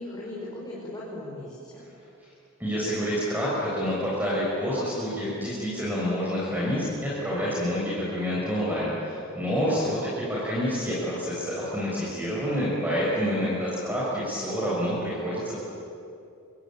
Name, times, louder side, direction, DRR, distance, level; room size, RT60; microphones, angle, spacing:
voice 1, 0.0-1.8 9.6-9.9 13.2-13.5, left 1 dB, 20° left, -6 dB, 5.7 m, -38 dB
voice 2, 2.6-10.0 10.3-15.6, equal, 10° right, -7 dB, 6.6 m, -28 dB
27.0 x 23.5 x 8.9 m, 2.6 s
head